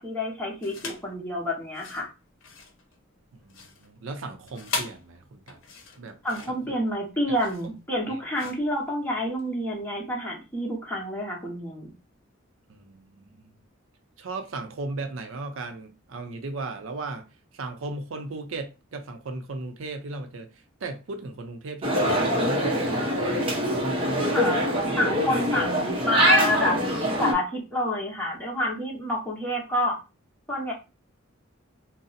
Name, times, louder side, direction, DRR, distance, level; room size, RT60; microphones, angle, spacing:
voice 1, 0.0-2.1 6.2-11.9 24.3-24.6 25.0-26.8 27.2-30.0 30.5-30.7, left 1 dB, 10° left, 0.9 m, -28 dB
sound 1, 0.6-1.1 1.6-9.5, left 4 dB, 70° left, 0.6 m, -39 dB
voice 2, 3.3-5.6 6.0-6.2 6.5-6.8 8.1-8.5 12.7-13.6 14.2-24.4 25.3-25.5, right 3 dB, 75° right, 0.5 m, -37 dB
sound 2, 21.8-27.3, equal, 25° right, 0.7 m, -24 dB
2.5 x 2.0 x 3.9 m
head